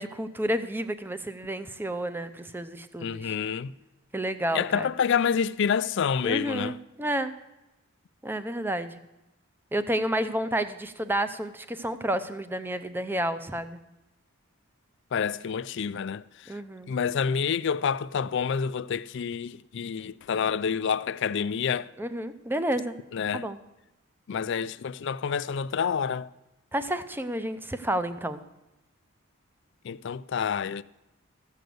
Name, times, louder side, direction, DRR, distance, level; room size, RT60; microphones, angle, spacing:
voice 1, 0.0-3.3 4.1-4.9 6.2-7.3 8.2-9.0 9.7-13.8 16.5-16.9 22.0-22.9 23.3-23.6 26.7-28.4, right 1 dB, 10° right, 0.5 m, -30 dB
voice 2, 3.0-3.7 4.5-6.8 15.1-16.5 16.9-21.9 23.1-23.5 24.3-26.3 29.8-30.8, left 6 dB, 55° left, 0.4 m, -28 dB
14.5 x 6.6 x 7.8 m
head